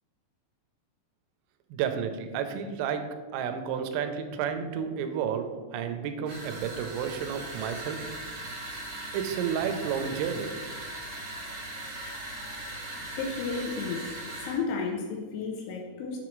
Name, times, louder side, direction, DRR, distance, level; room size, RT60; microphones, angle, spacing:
voice 1, 1.7-8.0 9.1-10.6, right 7 dB, 90° right, 7 dB, 3.3 m, -31 dB
sound 1, 6.2-14.6, right 1 dB, 60° right, 2.3 m, -39 dB
voice 2, 13.2-14.1 14.4-16.2, left 4 dB, 80° left, 0 dB, 2.9 m, -32 dB
7.5 x 5.9 x 3.1 m, 1.4 s
omnidirectional pair, 5.8 m